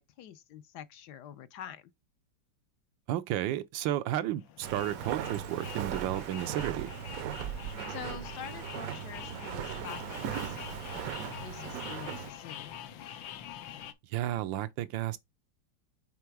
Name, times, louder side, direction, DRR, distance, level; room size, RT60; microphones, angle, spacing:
voice 1, 0.0-1.9 7.9-12.9, left 10 dB, 75° left, 1.1 m, -46 dB
voice 2, 3.1-6.9 14.1-15.2, right 13 dB, 90° right, 1.4 m, -32 dB
sound 1, 4.4-13.9, left 10 dB, 90° left, 1.5 m, -45 dB
Walk footsteps, 4.6-12.3, right 10 dB, 70° right, 0.9 m, -38 dB
5.8 x 3.8 x 4.7 m
omnidirectional pair, 2.0 m